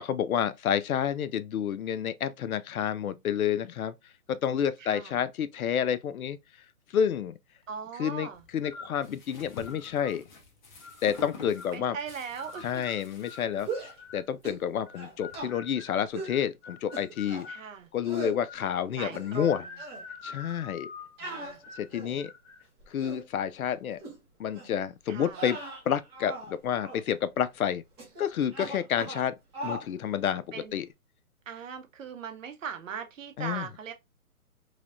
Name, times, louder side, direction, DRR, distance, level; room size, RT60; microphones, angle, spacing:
voice 1, 0.0-3.9 4.3-6.4 6.9-7.4 8.0-10.2 11.0-12.0 12.6-13.7 14.1-17.5 17.9-19.6 20.2-20.9 21.8-22.3 22.9-24.0 24.4-25.6 25.9-27.8 28.2-29.3 29.6-30.4 30.7-30.9 33.4-33.7, left 9 dB, 70° left, 0.5 m, -29 dB
voice 2, 4.8-5.2 7.7-8.4 11.7-12.9 17.5-17.9 19.0-19.7 21.2-21.6 25.1-25.5 30.5-30.9 31.5-33.9, right 6 dB, 60° right, 0.8 m, -39 dB
sound 1, 8.3-15.4, left 3 dB, 30° left, 0.9 m, -49 dB
sound 2, 8.6-9.0 9.6-10.2 10.8-11.8 12.4-14.3 14.9-17.7 18.2-18.7 19.2-21.2 21.6-21.9 22.2-22.6, left 5 dB, 50° left, 1.4 m, -46 dB
sound 3, 13.6-14.0 14.4-14.7 14.9-15.5 16.1-16.4 16.9-17.5 18.0-18.4 18.9-19.5 19.8-20.0 21.2-22.2 22.8-23.2 24.0-24.2 24.5-24.8 25.3-26.5 26.8-27.0 28.0-28.2 28.5-29.3 29.5-29.9, right 2 dB, 15° right, 1.0 m, -39 dB
3.3 x 3.1 x 2.5 m
hypercardioid pair, 155°, 45 cm